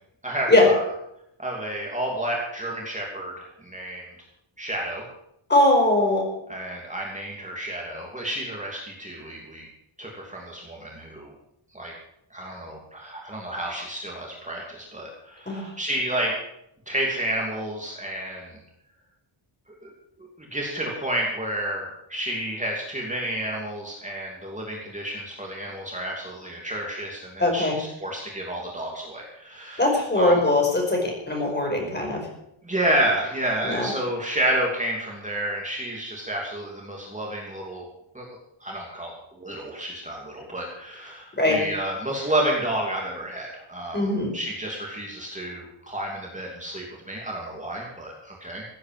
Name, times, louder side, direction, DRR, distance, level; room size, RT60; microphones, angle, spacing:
voice 1, 0.2-0.8 1.4-4.0 4.6-5.0 6.5-9.7 10.0-11.3 11.7-11.9 12.3-16.3 16.9-18.5 19.8-19.9 20.4-29.9 30.1-30.4 32.6-37.9 38.1-38.3 38.6-44.1 44.3-48.7, right 1 dB, 15° right, -2 dB, 2.9 m, -30 dB
voice 2, 5.5-6.2 15.5-15.7 27.4-27.8 29.8-32.2 33.6-33.9 41.4-41.6 43.9-44.3, left 2 dB, 20° left, 1 dB, 5.0 m, -21 dB
16.0 x 9.3 x 7.7 m, 0.77 s
wide cardioid pair, 150°, 48 cm